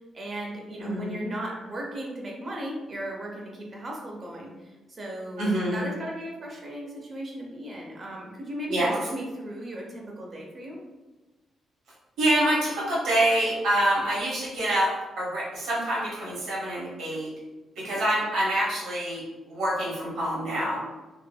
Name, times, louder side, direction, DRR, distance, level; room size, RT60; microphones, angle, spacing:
voice 1, 0.1-4.5 4.9-10.8 17.8-18.0, right 1 dB, 30° right, -1 dB, 0.5 m, -36 dB
voice 2, 0.8-1.2 5.4-5.8 8.7-8.9 12.2-17.3 17.8-20.8, right 1 dB, 80° right, -6 dB, 0.9 m, -26 dB
2.6 x 2.4 x 2.2 m, 1.1 s
cardioid pair, 155°, 0 cm